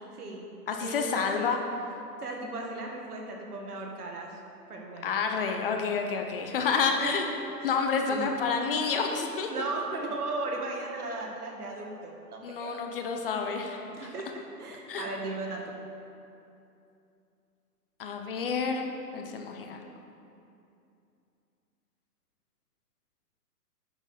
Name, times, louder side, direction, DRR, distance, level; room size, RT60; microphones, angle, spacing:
voice 1, 0.1-0.5 0.8-1.5 2.2-4.4 4.7-5.2 6.8-7.1 7.6-7.7 8.1-8.4 9.5-12.7 13.9-14.3 14.6-15.8, right 2 dB, 65° right, 0 dB, 1.9 m, -36 dB
voice 2, 0.7-1.6 5.0-7.3 7.6-9.5 12.4-14.1 14.9-15.1 18.0-19.8, left 5 dB, 35° left, 4 dB, 0.7 m, -29 dB
9.8 x 6.2 x 5.0 m, 2.7 s
hypercardioid pair, 135°, 48 cm